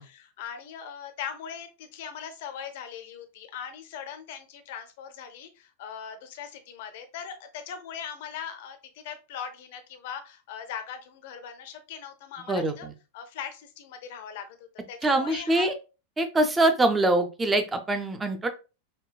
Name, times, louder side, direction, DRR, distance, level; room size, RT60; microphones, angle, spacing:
voice 1, 0.0-12.9 13.1-14.6 14.9-15.7, left 8 dB, 50° left, 8 dB, 0.6 m, -40 dB
voice 2, 12.5-12.9 15.0-15.7 16.2-18.5, right 2 dB, 15° right, 8 dB, 0.5 m, -24 dB
5.2 x 2.2 x 2.2 m, 0.31 s
figure-of-eight pair, 90°, 0 cm